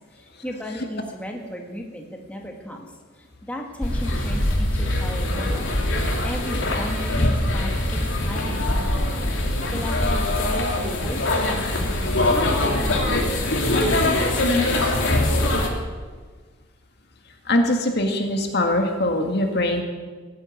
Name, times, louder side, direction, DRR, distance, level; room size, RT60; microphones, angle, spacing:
voice 1, 0.1-5.7 6.2-11.6 12.2-14.5, equal, 5° left, 0 dB, 1.8 m, -36 dB
sound 1, 3.8-15.7, left 1 dB, 70° left, 2.9 m, -22 dB
voice 2, 17.5-19.8, left 1 dB, 55° left, 3 dB, 2.0 m, -22 dB
17.5 x 9.1 x 8.6 m, 1.5 s
head